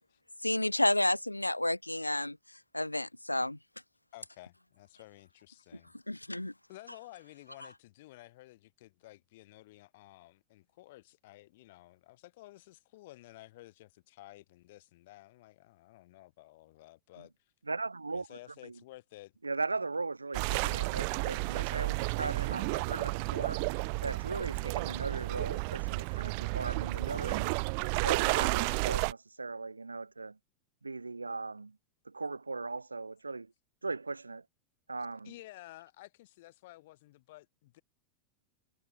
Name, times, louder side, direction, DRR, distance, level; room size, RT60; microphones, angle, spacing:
voice 1, 0.4-2.4 2.7-3.6 6.1-6.5, left 1 dB, 85° left, 0.3 m, -30 dB
voice 2, 4.1-5.9 6.7-17.3 18.1-19.3 35.2-37.8, left 18 dB, 50° left, 4.6 m, -53 dB
voice 3, 17.7-18.8 19.4-23.6 24.0-27.5 28.0-30.4 30.8-31.8 32.0-33.5 33.8-34.4 34.9-35.3, right 3 dB, 80° right, 1.6 m, -38 dB
sound 1, 20.3-29.1, right 35 dB, 45° right, 0.3 m, -32 dB
figure-of-eight pair, 90°, 0 cm